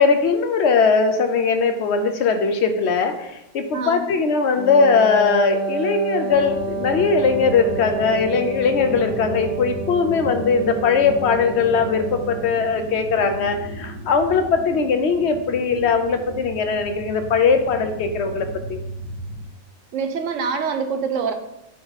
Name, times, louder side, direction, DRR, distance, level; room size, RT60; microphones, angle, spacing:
voice 1, 0.0-18.8, left 5 dB, 60° left, 7 dB, 0.9 m, -20 dB
voice 2, 3.7-4.0 19.9-21.3, right 5 dB, 65° right, 7 dB, 1.0 m, -25 dB
Wind instrument woodwind instrument, 4.5-12.6, right 3 dB, 10° right, 1.1 m, -30 dB
sound 1, 6.3-19.5, right 1 dB, 5° left, 1.5 m, -35 dB
8.7 x 2.9 x 4.0 m, 0.87 s
omnidirectional pair, 1.4 m